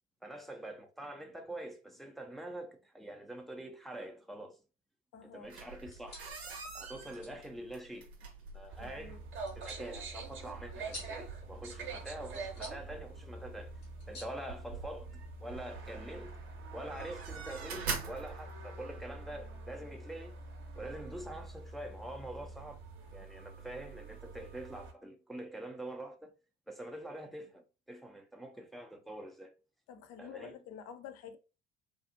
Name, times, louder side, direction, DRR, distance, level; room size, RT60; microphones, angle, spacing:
voice 1, 0.2-4.6 5.2-6.2 6.4-8.1 8.5-9.2 9.6-13.7 14.1-16.4 16.7-20.3 20.8-22.8 23.1-26.3 26.7-29.5 30.2-30.6, right 1 dB, ahead, 0.5 m, -45 dB
voice 2, 5.1-5.5 8.8-9.2 29.9-31.4, left 7 dB, 55° left, 0.5 m, -49 dB
sound 1, 5.4-19.0, right 5 dB, 85° right, 0.6 m, -46 dB
sound 2, 5.8-15.2, left 2 dB, 75° left, 1.4 m, -54 dB
sound 3, 8.7-24.9, right 3 dB, 40° right, 0.7 m, -46 dB
2.6 x 2.4 x 2.5 m
figure-of-eight pair, 55°, 31 cm